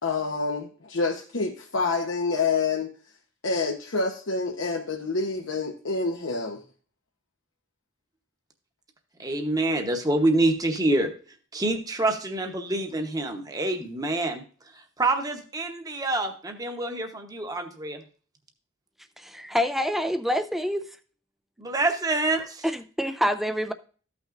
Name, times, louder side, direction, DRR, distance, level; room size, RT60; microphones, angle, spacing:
voice 1, 0.0-2.9 3.4-6.6, left 4 dB, 85° left, 0.9 m, -27 dB
voice 2, 9.2-11.1 11.5-14.4 14.7-18.0 21.6-22.6, right 2 dB, 20° right, 0.9 m, -26 dB
voice 3, 19.2-20.9 22.6-22.7 23.0-23.7, equal, ahead, 0.4 m, -26 dB
14.0 x 5.9 x 2.5 m
head